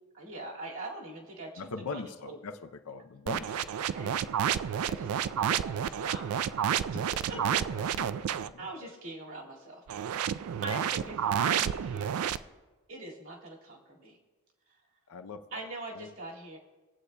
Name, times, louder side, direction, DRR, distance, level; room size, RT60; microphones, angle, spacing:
voice 1, 0.1-2.4 3.9-6.6 6.9-7.6 8.6-9.8 10.6-12.1 12.9-14.2 15.5-16.6, right 2 dB, 65° right, -3 dB, 2.1 m, -43 dB
voice 2, 1.6-3.7 7.3-8.9 15.1-15.6 15.9-16.1, left 4 dB, 90° left, 8 dB, 0.5 m, -42 dB
sound 1, 3.3-8.5 9.9-12.4, right 9 dB, 85° right, 0.3 m, -30 dB
20.0 x 8.1 x 2.2 m, 1.2 s
head